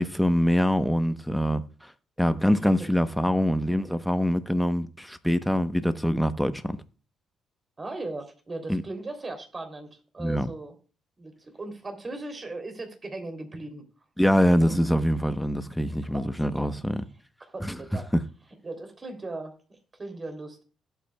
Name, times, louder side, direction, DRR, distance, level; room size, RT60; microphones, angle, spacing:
voice 1, 0.0-1.6 2.2-6.7 8.7-8.8 10.2-10.5 14.2-17.0 17.6-17.8 18.1-18.2, equal, 5° left, 1.0 m, -24 dB
voice 2, 7.8-10.7 11.2-13.8 16.1-16.8 17.4-18.1 18.6-20.6, right 2 dB, 30° right, 3.1 m, -38 dB
18.0 x 8.4 x 2.3 m
cardioid pair, 90°, 0 cm